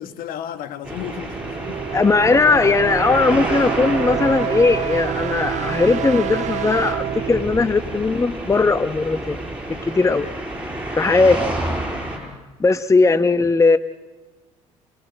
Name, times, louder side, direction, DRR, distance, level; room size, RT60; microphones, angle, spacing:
voice 1, 0.0-1.8 9.9-10.0 10.6-10.8 12.2-12.5, left 10 dB, 60° left, 1.4 m, -35 dB
sound 1, 0.8-12.2, right 1 dB, 5° right, 6.9 m, -30 dB
sound 2, 1.0-8.8, right 10 dB, 45° right, 1.5 m, -28 dB
voice 2, 1.9-9.4 9.7-10.3 11.0-11.4 12.6-13.8, left 3 dB, 20° left, 0.9 m, -18 dB
28.0 x 18.0 x 7.6 m
hypercardioid pair, 55°, 17 cm